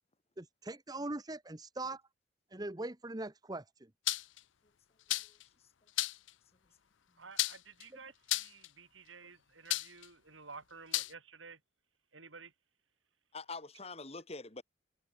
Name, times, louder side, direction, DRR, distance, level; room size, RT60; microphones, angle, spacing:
voice 1, 0.4-2.0 2.5-3.9 7.9-8.0, right 2 dB, 20° right, 1.0 m, -41 dB
sound 1, 4.1-4.4 5.1-5.4 6.0-6.3 7.4-7.8 8.3-8.7 9.7-10.1 10.9-11.1, left 17 dB, 75° left, 0.6 m, -33 dB
voice 2, 7.2-11.6 12.1-12.5, right 4 dB, 90° right, 6.1 m, -52 dB
voice 3, 13.3-14.6, left 3 dB, 35° left, 2.4 m, -45 dB
head